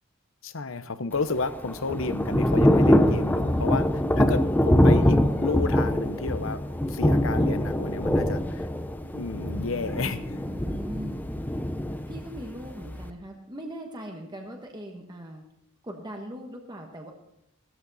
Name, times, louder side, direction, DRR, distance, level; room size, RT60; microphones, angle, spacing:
voice 1, 0.4-6.6 6.9-8.7 9.1-10.5, left 4 dB, 75° left, 12 dB, 0.9 m, -32 dB
Thunder / Rain, 1.2-13.1, left 1 dB, 10° left, 0.7 m, -24 dB
voice 2, 9.3-11.2 12.1-15.4 15.8-17.1, equal, 20° right, 2 dB, 1.2 m, -40 dB
15.0 x 13.0 x 4.1 m, 0.79 s
head